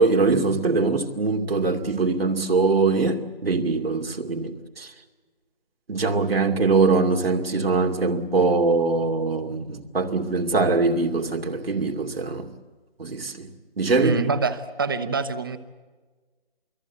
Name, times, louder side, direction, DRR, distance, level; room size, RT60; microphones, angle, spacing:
voice 1, 0.0-4.9 5.9-12.5 13.0-13.5 13.8-14.2, right 3 dB, 80° right, 2.6 m, -22 dB
voice 2, 14.0-15.6, right 4 dB, 25° right, 1.0 m, -25 dB
28.5 x 19.0 x 8.0 m
hypercardioid pair, 175°, 29 cm